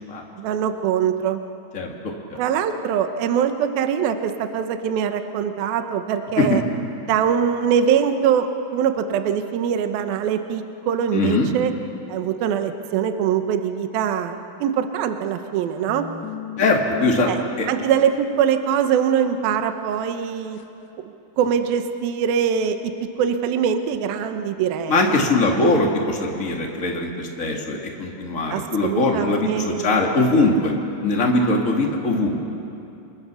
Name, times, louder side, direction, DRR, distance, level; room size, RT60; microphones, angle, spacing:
voice 1, 0.4-1.4 2.4-6.6 7.1-8.5 8.7-11.7 12.1-16.1 17.3-17.4 17.7-20.6 21.4-22.8 23.2-25.2 28.5-30.0, right 8 dB, 75° right, 7 dB, 2.2 m, -23 dB
voice 2, 1.7-2.4 6.4-6.6 11.1-11.5 16.6-17.3 17.6-17.7 24.9-30.7 31.0-32.4, left 2 dB, 40° left, 0 dB, 1.1 m, -21 dB
sound 1, 15.9-19.5 19.9-20.0 20.6-20.7 21.4-21.8, left 6 dB, 80° left, 1.6 m, -37 dB
28.5 x 24.5 x 7.0 m, 2.8 s
omnidirectional pair, 5.5 m